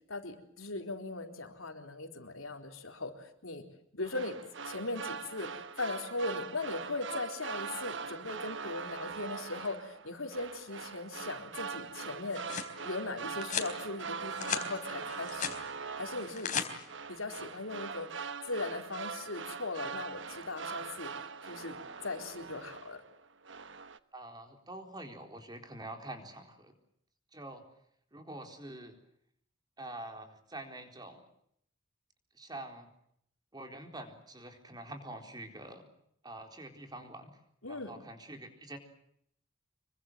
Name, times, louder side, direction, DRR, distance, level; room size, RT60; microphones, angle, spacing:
voice 1, 0.1-3.6 3.9-4.4 4.7-12.4 12.8-15.7 16.0-16.7 17.1-18.1 18.5-21.8 22.0-23.0 37.6-37.9, left 2 dB, 85° left, 4 dB, 4.1 m, -39 dB
sound 1, 4.0-23.2 23.5-24.0, right 5 dB, 65° right, 1.3 m, -42 dB
sound 2, 12.1-12.7 13.4-13.7 14.2-14.7 15.0-15.6 16.2-16.7, left 7 dB, 40° left, 3.9 m, -36 dB
voice 2, 24.1-26.7 27.3-27.6 28.1-29.0 29.8-31.2 32.3-32.9 33.5-35.9 36.2-37.4 37.7-38.8, right 1 dB, 20° right, 5 dB, 4.1 m, -46 dB
26.5 x 24.0 x 7.5 m, 0.72 s
head